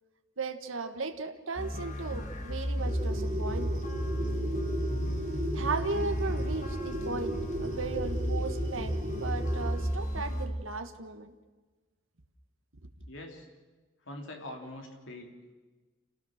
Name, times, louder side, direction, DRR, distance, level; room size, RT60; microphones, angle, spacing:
voice 1, 0.4-3.8 5.5-8.9 9.2-11.3, right 3 dB, 70° right, 7 dB, 1.5 m, -36 dB
sound 1, 1.6-10.5, equal, 35° left, 2.0 m, -33 dB
sound 2, 2.8-9.7, equal, 25° right, 5.9 m, -35 dB
voice 2, 13.1-13.5 14.0-15.5, left 1 dB, 60° left, 2 dB, 3.2 m, -44 dB
27.5 x 17.0 x 6.5 m, 1.3 s
head